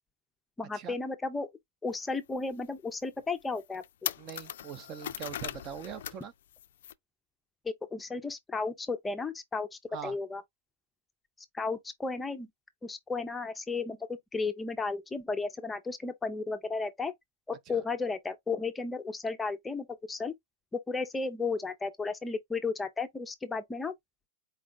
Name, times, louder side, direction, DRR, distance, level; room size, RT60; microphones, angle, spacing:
voice 1, 0.6-1.5 1.8-4.1 7.6-10.4 11.5-12.5 12.8-17.1 17.5-20.3 20.7-23.9, left 4 dB, 10° left, 0.5 m, -34 dB
sound 1, 1.9-2.0 2.5-2.6 3.2-3.3 3.5-6.3 6.5-6.9, left 11 dB, 80° left, 0.4 m, -39 dB
voice 2, 4.2-6.3 9.9-10.2 17.7-17.8, right 8 dB, 35° right, 0.6 m, -42 dB
4.4 x 2.3 x 3.8 m
supercardioid pair, 140°, 0 cm